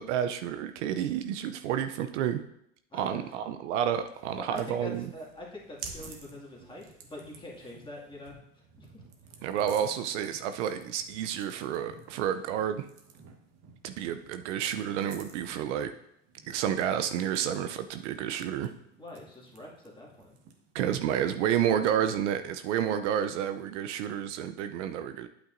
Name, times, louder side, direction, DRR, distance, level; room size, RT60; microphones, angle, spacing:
voice 1, 0.0-2.4 2.9-5.0 9.4-12.9 13.8-15.9 16.5-18.7 20.7-25.3, right 9 dB, 65° right, 9 dB, 0.6 m, -30 dB
voice 2, 2.9-3.4 4.4-9.0 19.0-20.4, left 1 dB, 15° left, -3 dB, 2.2 m, -45 dB
sound 1, 4.1-20.7, right 5 dB, 45° right, 1.4 m, -52 dB
8.8 x 8.3 x 2.6 m, 0.75 s
hypercardioid pair, 100°, 38 cm